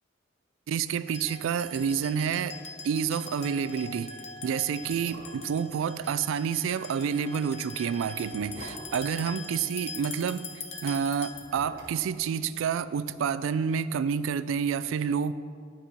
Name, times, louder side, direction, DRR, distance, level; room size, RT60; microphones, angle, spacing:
voice 1, 0.7-2.6 2.8-4.1 4.4-10.5 10.8-15.3, right 7 dB, 75° right, 15 dB, 0.3 m, -29 dB
sound 1, 1.1-11.7, left 4 dB, 35° left, 0.7 m, -43 dB
sound 2, 1.6-2.3 2.6-2.7 3.1-3.3 4.0-4.1 4.7-5.6 7.2-9.8 11.1-13.3 13.6-13.7, right 1 dB, 45° right, 1.5 m, -48 dB
11.5 x 5.4 x 4.2 m, 2.2 s
head